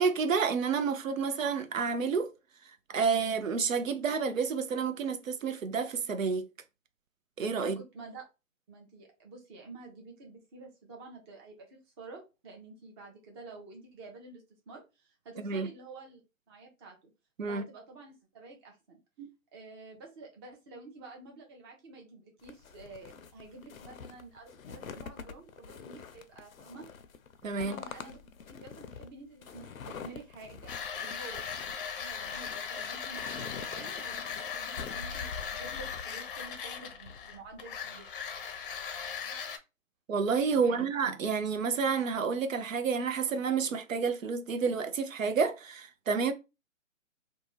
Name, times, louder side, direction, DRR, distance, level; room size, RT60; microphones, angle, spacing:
voice 1, 0.0-2.3 2.9-6.5 7.4-7.8 15.4-15.7 17.4-17.6 19.2-19.3 27.4-27.8 40.1-46.3, right 5 dB, 75° right, 0.7 m, -29 dB
voice 2, 7.6-8.2 8.7-16.2 16.5-17.1 17.5-19.0 19.5-26.9 27.6-28.2 28.5-30.7 31.0-31.5 32.0-38.1 40.5-40.9, right 3 dB, 20° right, 0.7 m, -49 dB
sound 1, 22.4-36.1, left 6 dB, 85° left, 0.6 m, -46 dB
sound 2, 30.7-39.6, left 7 dB, 40° left, 0.6 m, -38 dB
2.7 x 2.2 x 3.1 m
figure-of-eight pair, 140°, 40 cm